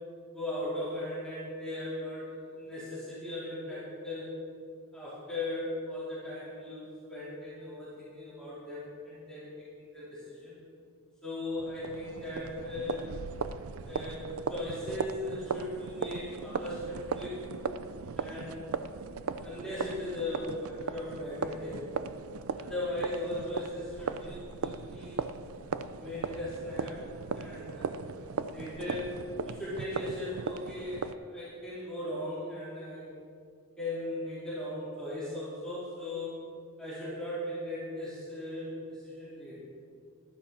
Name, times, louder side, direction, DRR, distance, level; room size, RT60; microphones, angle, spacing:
voice 1, 0.3-4.3 4.9-9.5 9.8-10.6 11.2-13.3 13.8-17.5 18.2-18.7 19.4-21.8 22.6-25.2 26.0-27.0 27.3-29.1 29.5-33.0 33.8-36.4 36.8-39.6, left 1 dB, 5° left, -11 dB, 4.1 m, -38 dB
sound 1, 11.5-31.1, right 5 dB, 75° right, 0.5 m, -38 dB
15.5 x 12.0 x 4.3 m, 2.3 s
head